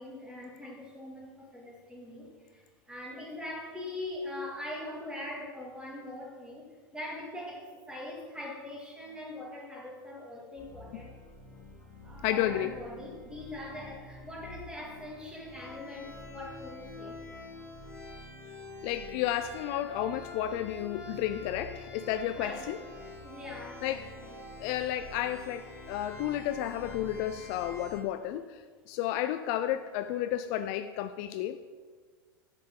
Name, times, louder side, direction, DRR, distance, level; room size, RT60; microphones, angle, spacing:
voice 1, 0.0-6.7 6.9-11.2 12.0-17.2 22.3-22.9 23.2-24.4, left 1 dB, 5° right, -2 dB, 2.1 m, -42 dB
sound 1, 10.6-28.0, left 2 dB, 25° left, 2.1 m, -47 dB
voice 2, 12.2-12.7 18.8-22.8 23.8-24.1 24.6-31.6, left 12 dB, 45° left, 10 dB, 0.3 m, -32 dB
8.4 x 6.5 x 3.7 m, 1.5 s
hypercardioid pair, 100°, 12 cm